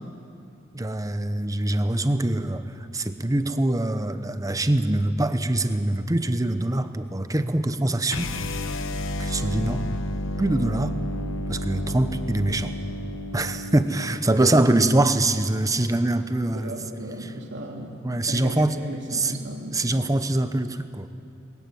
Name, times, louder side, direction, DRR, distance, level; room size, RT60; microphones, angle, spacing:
voice 1, 0.7-8.3 9.2-9.9 10.4-10.9 11.5-12.7 13.3-16.7 18.0-18.8 19.1-19.4 19.7-21.1, right 1 dB, 20° right, 10 dB, 0.9 m, -24 dB
sound 1, 8.1-14.2, left 1 dB, 85° left, 1.1 m, -31 dB
voice 2, 16.5-18.0 18.3-19.8, right 1 dB, 65° right, 0 dB, 3.3 m, -35 dB
21.5 x 14.5 x 9.5 m, 2.7 s
head